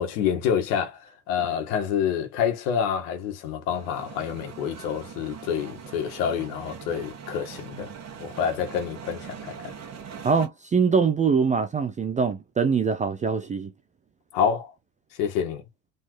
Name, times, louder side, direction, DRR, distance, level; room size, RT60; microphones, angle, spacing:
voice 1, 0.0-7.9 8.2-9.7 14.3-14.7 15.1-15.6, left 8 dB, 65° left, 1.9 m, -27 dB
sound 1, 3.7-10.5, right 7 dB, 30° right, 1.5 m, -42 dB
voice 2, 10.2-13.7, right 5 dB, 15° right, 0.5 m, -23 dB
4.0 x 3.8 x 3.2 m
hypercardioid pair, 95°, 50 cm